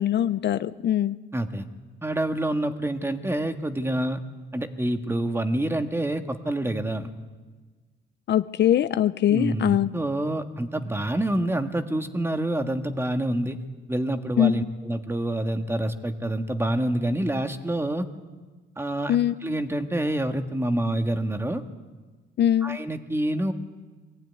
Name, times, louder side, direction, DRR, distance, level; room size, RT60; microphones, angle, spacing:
voice 1, 0.0-1.2 8.3-9.9 14.4-14.7 19.1-19.4 22.4-22.8, left 11 dB, 60° left, 13 dB, 0.6 m, -22 dB
voice 2, 1.3-1.7 2.0-4.2 4.5-7.1 9.3-13.6 13.9-18.1 18.8-19.1 19.4-21.6 22.6-23.5, right 1 dB, 10° right, 6 dB, 1.7 m, -27 dB
22.0 x 15.0 x 9.5 m, 1.3 s
cardioid pair, 90°, 20 cm